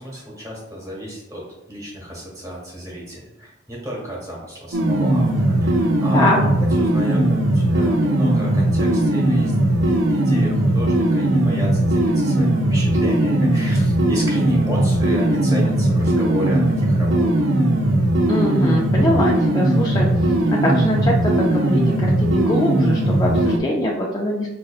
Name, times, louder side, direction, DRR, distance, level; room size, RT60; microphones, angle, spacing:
voice 1, 0.0-1.4 1.7-6.5 6.8-17.5, equal, 20° right, -3 dB, 1.1 m, -33 dB
sound 1, 4.7-23.6, right 1 dB, 85° right, 0.5 m, -18 dB
voice 2, 18.3-24.5, left 1 dB, 20° left, -2 dB, 0.3 m, -23 dB
5.1 x 2.5 x 2.3 m, 0.95 s
head